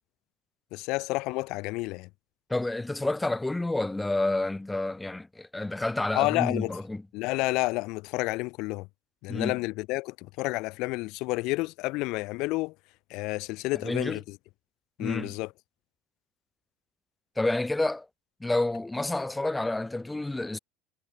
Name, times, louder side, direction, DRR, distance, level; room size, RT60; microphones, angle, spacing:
voice 1, 0.7-2.1 6.1-6.8 7.1-8.9 9.2-12.7 13.1-14.4 15.0-15.5, left 22 dB, 65° left, 1.0 m, -30 dB
voice 2, 2.5-7.0 9.3-9.6 13.8-14.2 15.0-15.4 17.4-18.1 18.4-20.6, left 2 dB, 10° left, 1.0 m, -29 dB
hypercardioid pair, 75°, 0 cm